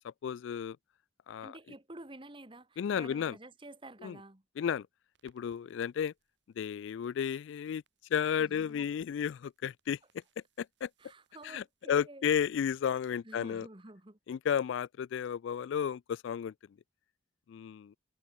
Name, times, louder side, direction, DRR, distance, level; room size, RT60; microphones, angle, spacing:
voice 1, 0.0-0.8 1.3-1.6 2.8-3.4 4.0-4.2 4.6-4.9 5.2-6.1 6.6-7.8 8.1-10.0 10.6-10.9 11.4-13.7 14.3-16.5 17.5-18.0, left 8 dB, 70° left, 0.3 m, -33 dB
voice 2, 1.4-4.4 8.4-8.9 11.0-12.3 13.2-14.2, right 2 dB, 25° right, 1.5 m, -50 dB
sound 1, 5.1-11.9, right 3 dB, 60° right, 5.3 m, -74 dB
head